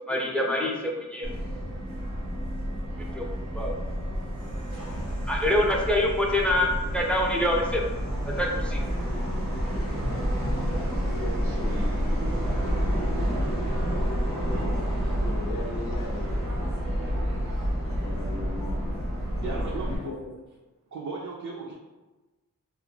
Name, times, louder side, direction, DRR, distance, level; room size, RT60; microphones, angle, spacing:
voice 1, 0.1-1.3 3.1-3.3 3.5-3.7 5.3-7.8 8.3-8.8, left 1 dB, 5° left, -1 dB, 0.4 m, -25 dB
Subway metro underground, 1.2-20.0, equal, 80° right, 0.8 m, -29 dB
voice 2, 10.7-12.0 12.3-13.3 15.1-16.4 18.0-18.9 19.4-20.3, left 2 dB, 90° left, 1 dB, 0.5 m, -39 dB
voice 3, 19.4-20.1 20.9-21.7, right 4 dB, 60° right, -3 dB, 0.4 m, -36 dB
2.3 x 2.1 x 3.1 m, 1.1 s
wide cardioid pair, 65°, 34 cm